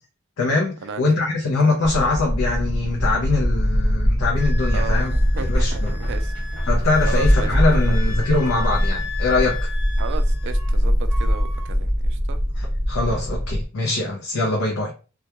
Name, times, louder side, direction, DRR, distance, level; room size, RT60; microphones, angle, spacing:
voice 1, 0.4-5.1 5.5-5.9 6.7-9.7 12.6-14.9, left 3 dB, 70° left, 0.6 m, -23 dB
sound 1, 1.8-13.7, equal, 90° left, 1.0 m, -22 dB
sound 2, 2.7-3.3 5.4-8.0, equal, 10° left, 1.1 m, -39 dB
Wind instrument woodwind instrument, 4.4-10.8 11.1-11.7, left 6 dB, 30° left, 1.1 m, -36 dB
voice 2, 4.7-6.3 7.1-8.0 10.0-12.4, right 5 dB, 60° right, 0.3 m, -34 dB
2.2 x 2.2 x 2.8 m
head